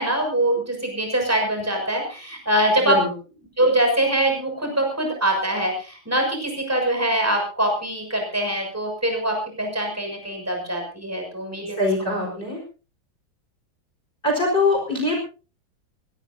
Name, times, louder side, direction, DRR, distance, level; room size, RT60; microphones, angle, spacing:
voice 1, 0.0-3.0 3.6-12.1, right 1 dB, 5° right, 2 dB, 6.5 m, -23 dB
voice 2, 11.8-12.6 14.2-15.2, left 2 dB, 25° left, 1 dB, 4.9 m, -22 dB
24.0 x 17.0 x 2.7 m, 0.36 s
omnidirectional pair, 2.2 m